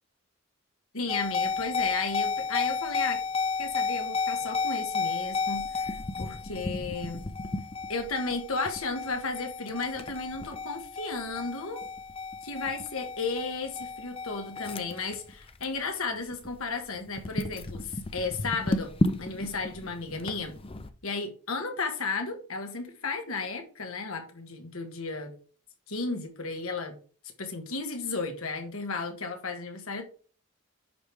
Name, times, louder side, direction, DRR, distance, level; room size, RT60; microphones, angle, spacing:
voice 1, 0.9-3.2 3.6-7.3 7.9-11.8 12.4-18.9 19.2-20.5 21.0-25.3 25.9-27.0 27.4-30.0, left 4 dB, 75° left, 1.5 m, -34 dB
sound 1, 1.1-15.9 16.2-16.5 17.1-20.9, left 4 dB, 25° left, 0.5 m, -33 dB
9.9 x 3.4 x 4.8 m
head